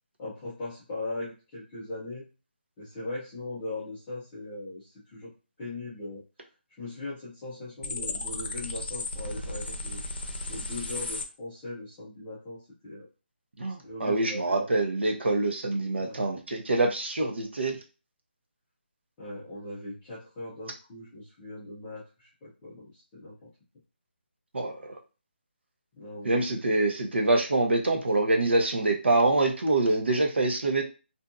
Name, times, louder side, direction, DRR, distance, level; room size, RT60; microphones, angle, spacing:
voice 1, 0.2-2.2 2.8-5.3 5.6-6.2 6.8-10.0 10.5-13.1 13.8-14.7 16.0-16.3 19.2-23.5 26.0-26.6, left 2 dB, 5° left, -11 dB, 0.3 m, -39 dB
sound 1, 7.8-11.2, left 2 dB, 65° left, 0.6 m, -35 dB
voice 2, 13.6-17.8 24.5-24.8 26.2-30.8, right 2 dB, 75° right, 2 dB, 0.9 m, -25 dB
2.7 x 2.5 x 2.4 m, 0.32 s
hypercardioid pair, 175°, 6 cm